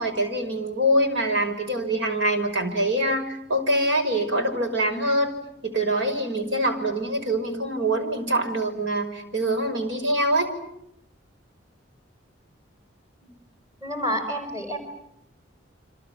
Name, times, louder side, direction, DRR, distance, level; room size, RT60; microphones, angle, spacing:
voice 1, 0.0-5.3 5.6-10.5, right 1 dB, 70° right, 6 dB, 5.7 m, -24 dB
voice 2, 13.8-14.8, equal, 20° right, 5 dB, 5.7 m, -28 dB
29.5 x 26.0 x 7.5 m, 0.77 s
head